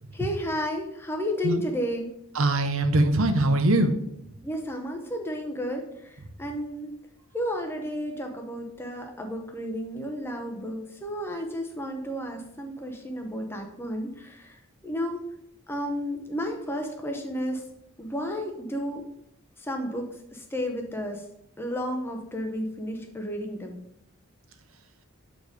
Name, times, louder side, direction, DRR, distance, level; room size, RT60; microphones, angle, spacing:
voice 1, 0.1-2.1 4.4-6.9 7.3-14.6 14.8-15.2 15.7-17.6 18.0-19.0 19.6-20.1 20.3-21.2 21.6-23.8, equal, 10° left, 3 dB, 0.7 m, -32 dB
voice 2, 2.3-4.0, right 1 dB, 70° right, 8 dB, 0.8 m, -22 dB
6.6 x 4.1 x 4.9 m, 0.77 s
head